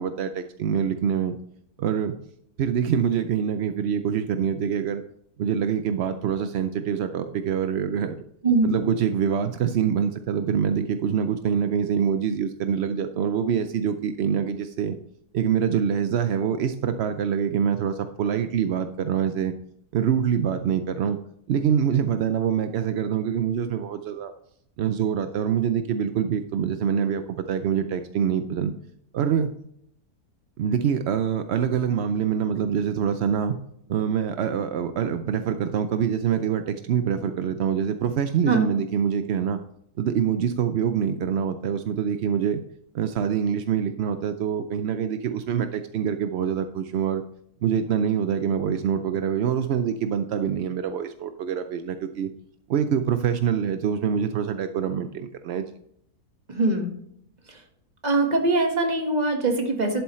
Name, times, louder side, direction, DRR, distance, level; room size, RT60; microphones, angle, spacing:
voice 1, 0.0-1.4 1.8-2.2 2.6-5.0 5.4-8.2 8.6-15.0 15.3-19.5 19.9-21.2 21.5-24.3 24.8-28.7 29.1-29.5 30.6-33.6 33.9-39.6 40.0-42.6 42.9-47.2 47.6-52.3 52.7-55.7, right 8 dB, 70° right, 9 dB, 0.6 m, -25 dB
voice 2, 8.4-8.7 38.5-38.7 56.5-56.9 57.5-57.6 58.0-60.0, right 2 dB, 30° right, 3 dB, 1.5 m, -22 dB
11.0 x 8.0 x 3.1 m, 0.71 s
omnidirectional pair, 1.6 m